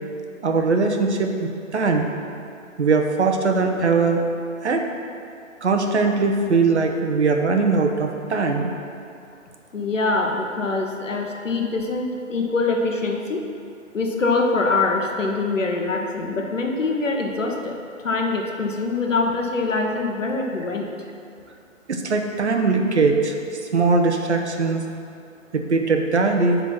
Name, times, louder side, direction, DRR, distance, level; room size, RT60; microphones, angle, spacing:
voice 1, 0.4-2.1 2.8-4.2 4.6-4.8 5.6-8.7 21.9-23.3 23.7-24.8 25.5-26.6, right 4 dB, 55° right, 3 dB, 1.0 m, -20 dB
voice 2, 9.7-13.4 13.9-17.7 18.0-20.9, left 3 dB, 70° left, 1 dB, 1.3 m, -24 dB
9.4 x 4.0 x 5.9 m, 2.4 s
figure-of-eight pair, 140°, 40 cm